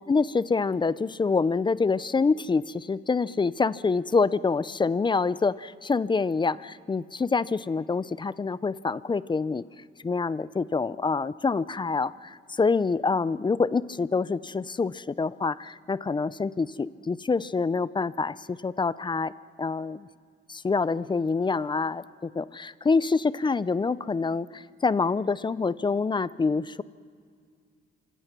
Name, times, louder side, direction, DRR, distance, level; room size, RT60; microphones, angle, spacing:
voice 1, 0.1-9.6 10.0-19.3 19.6-20.1 20.5-26.8, left 4 dB, 25° left, 18 dB, 0.5 m, -26 dB
26.0 x 25.5 x 6.1 m, 2.2 s
cardioid pair, 90°, 20 cm